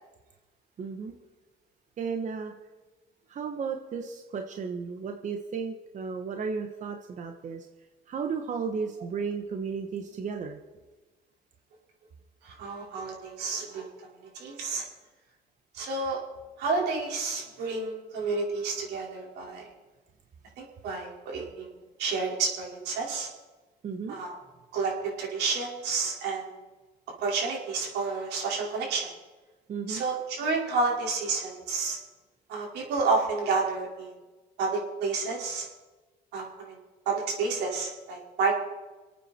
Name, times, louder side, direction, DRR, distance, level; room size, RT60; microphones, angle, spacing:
voice 1, 0.8-1.1 2.0-2.5 3.3-7.7 8.1-10.6 23.8-24.2 29.7-30.0, right 5 dB, 45° right, 4 dB, 1.3 m, -34 dB
voice 2, 12.4-13.9 14.3-14.8 15.7-16.2 16.6-19.6 20.6-21.7 22.0-23.3 24.1-24.4 24.7-26.4 27.2-29.1 29.9-32.0 32.5-34.1 34.6-35.7 36.3-36.7 37.0-38.5, right 4 dB, 85° right, -2 dB, 5.0 m, -30 dB
27.0 x 9.1 x 4.4 m, 1.2 s
cardioid pair, 110°, 17 cm